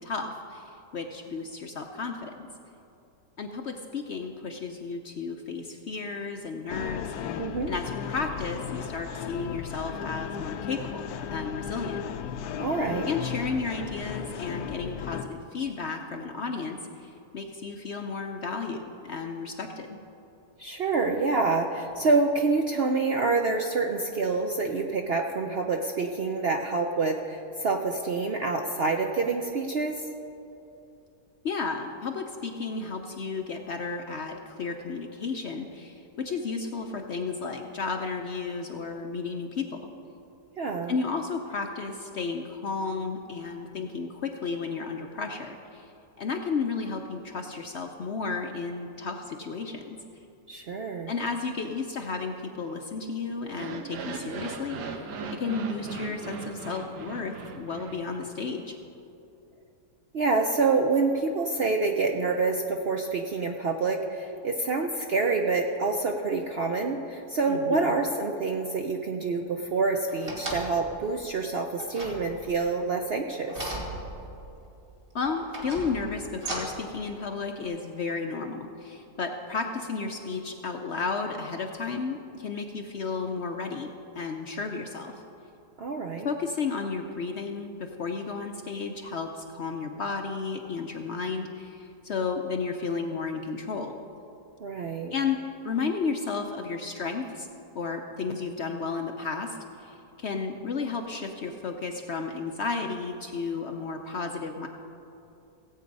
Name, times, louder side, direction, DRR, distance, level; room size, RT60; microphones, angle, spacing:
voice 1, 0.0-2.5 3.4-12.0 13.0-20.0 31.4-39.9 40.9-45.9 46.2-50.0 51.1-58.8 67.5-67.9 75.1-83.9 84.1-85.2 86.2-93.9 95.1-95.4 95.6-97.5 97.7-104.7, left 4 dB, 55° left, 4 dB, 0.8 m, -33 dB
sound 1, 6.7-15.2, left 8 dB, 75° left, 1.1 m, -35 dB
voice 2, 7.4-7.7 12.6-13.1 20.6-30.0 40.6-40.9 50.5-51.1 60.1-73.7 85.8-86.3 94.6-95.1, right 3 dB, 55° right, 3 dB, 0.7 m, -27 dB
sound 2, 53.4-58.6, right 4 dB, 85° right, 1.5 m, -38 dB
sound 3, 70.1-70.9 71.8-72.7 73.5-74.5 75.2-76.9 77.6-77.7, right 1 dB, 35° right, 2.4 m, -37 dB
17.0 x 8.3 x 5.3 m, 2.8 s
omnidirectional pair, 1.7 m